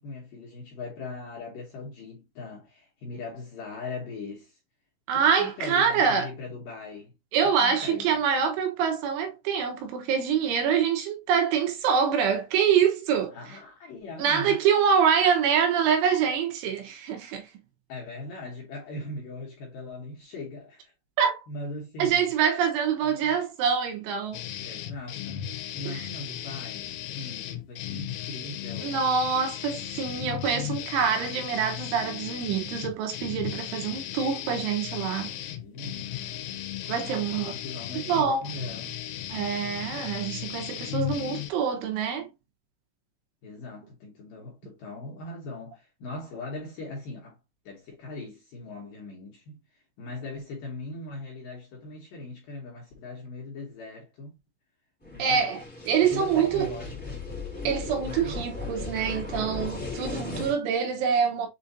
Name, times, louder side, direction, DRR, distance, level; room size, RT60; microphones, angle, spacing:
voice 1, 0.0-4.6 5.1-7.1 7.4-8.2 13.3-14.6 17.9-20.9 21.5-22.2 23.0-23.4 24.6-29.1 34.9-39.0 43.4-47.4 47.7-54.4 55.1-55.5 56.1-57.2 58.2-58.8 60.9-61.0 61.3-61.5, left 3 dB, 70° left, 2.3 m, -40 dB
voice 2, 5.1-6.3 7.3-13.4 14.2-17.5 21.2-21.4 22.0-24.4 25.9-26.0 28.8-35.3 36.9-37.5 38.1-38.5 39.3-42.3 55.2-56.7 57.7-61.5, right 7 dB, 90° right, 3.5 m, -25 dB
sound 1, 24.3-41.5, left 12 dB, 85° left, 3.0 m, -36 dB
sound 2, 55.0-60.5, left 3 dB, 5° left, 1.0 m, -36 dB
7.4 x 2.5 x 2.7 m
omnidirectional pair, 5.4 m